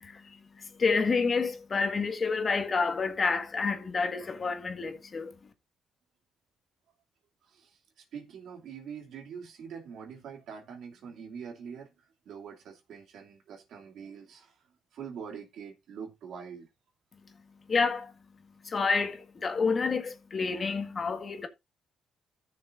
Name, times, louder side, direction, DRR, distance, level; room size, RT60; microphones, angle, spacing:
voice 1, 0.0-5.4 17.7-18.1 18.6-21.5, left 4 dB, 40° left, 1.6 m, -29 dB
voice 2, 7.4-11.9 12.3-14.6 14.9-16.7, right 7 dB, 75° right, 2.5 m, -44 dB
14.0 x 6.7 x 2.5 m
cardioid pair, 90°, 0 cm